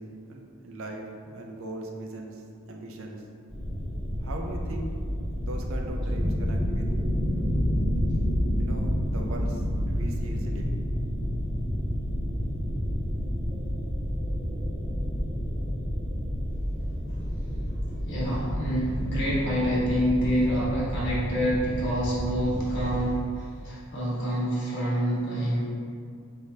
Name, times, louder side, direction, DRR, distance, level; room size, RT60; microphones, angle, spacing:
voice 1, 0.0-2.4 2.7-3.2 4.2-4.9 5.4-6.9 8.6-9.6 9.9-10.7, right 1 dB, 60° right, 1 dB, 0.5 m, -39 dB
sound 1, 3.5-23.1, equal, 5° left, 0.8 m, -29 dB
voice 2, 18.1-25.6, equal, 55° left, -7 dB, 1.3 m, -27 dB
4.5 x 3.4 x 2.8 m, 2.2 s
head